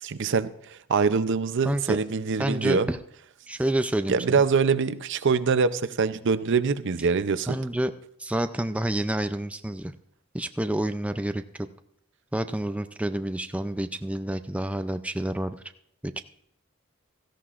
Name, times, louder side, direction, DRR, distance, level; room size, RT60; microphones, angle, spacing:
voice 1, 0.0-2.9 4.1-7.6, right 5 dB, 60° right, 13 dB, 0.6 m, -24 dB
voice 2, 1.6-2.0 2.4-3.0 3.5-4.4 7.5-7.9 8.2-9.9 10.3-11.7 12.3-15.6 16.2-16.3, right 1 dB, 5° right, 9 dB, 0.4 m, -28 dB
17.0 x 14.0 x 2.5 m, 0.73 s
head